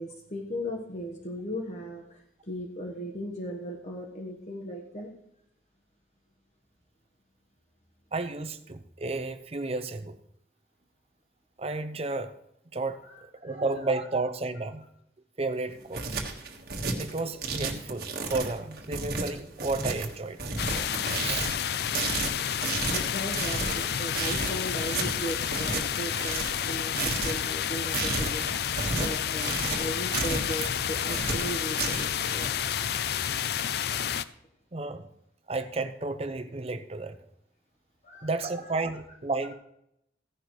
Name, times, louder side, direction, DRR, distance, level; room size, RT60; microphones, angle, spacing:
voice 1, 0.0-5.1 13.0-13.6 22.8-28.4 29.0-32.5 38.0-38.3 38.6-38.7, equal, 40° left, 1 dB, 1.3 m, -37 dB
voice 2, 8.1-10.2 11.6-12.3 12.7-13.0 13.3-14.9 15.4-16.2 17.0-20.4 20.7-20.9 21.2-21.5 34.7-35.1 35.5-37.2 38.2-39.5, right 3 dB, 35° right, 9 dB, 0.7 m, -32 dB
sound 1, 15.7-32.5, right 3 dB, 55° right, 1.6 m, -33 dB
sound 2, 20.6-34.2, left 9 dB, 60° left, 0.4 m, -30 dB
15.5 x 11.0 x 3.2 m, 0.79 s
head